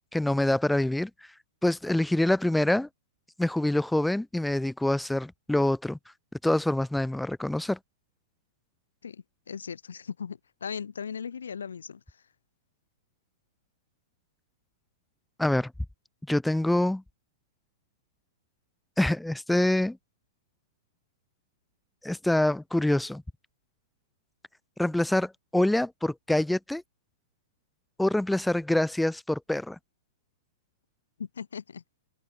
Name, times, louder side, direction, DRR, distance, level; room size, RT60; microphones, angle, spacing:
voice 1, 0.1-1.1 1.6-2.9 3.4-6.0 6.4-7.8 15.4-15.7 16.3-17.0 19.0-20.0 22.0-23.2 24.8-26.8 28.0-29.8, left 1 dB, 5° left, 0.7 m, -25 dB
voice 2, 9.0-12.2 31.2-31.8, left 7 dB, 75° left, 1.8 m, -38 dB
figure-of-eight pair, 110°, 0 cm